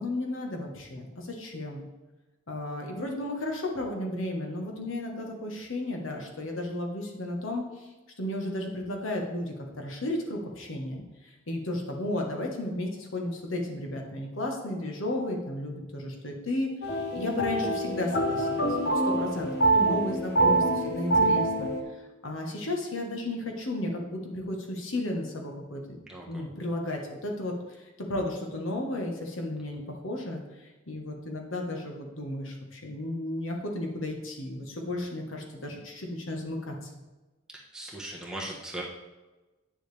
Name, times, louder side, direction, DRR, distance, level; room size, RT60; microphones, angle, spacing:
voice 1, 0.0-1.8 2.5-7.9 8.2-21.7 22.2-26.0 26.3-36.9, left 1 dB, 80° left, 1 dB, 1.4 m, -34 dB
sound 1, 16.8-21.8, right 2 dB, 50° left, 0.9 m, -25 dB
voice 2, 26.1-26.4 37.5-38.8, right 1 dB, 5° right, -4 dB, 1.2 m, -39 dB
9.0 x 6.8 x 3.4 m, 1.1 s
head